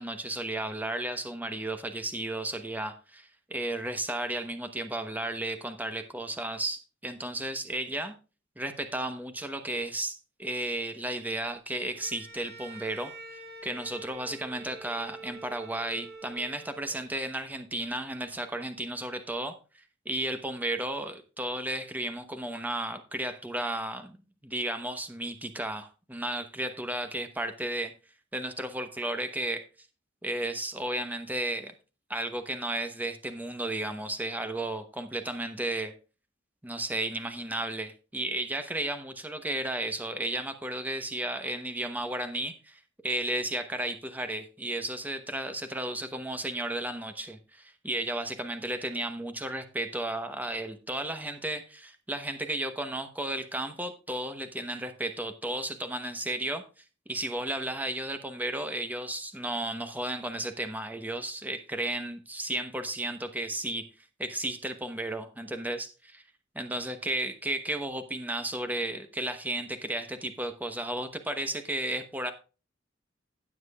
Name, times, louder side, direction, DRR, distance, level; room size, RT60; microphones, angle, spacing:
voice 1, 0.0-8.1 8.6-24.2 24.4-27.9 28.3-29.6 30.2-31.7 32.1-35.9 36.6-56.6 57.1-63.9 64.2-66.2 66.5-72.3, right 1 dB, 10° right, 0.9 m, -34 dB
Bowed string instrument, 11.9-17.2, right 2 dB, 55° right, 2.2 m, -46 dB
16.5 x 7.4 x 2.4 m
head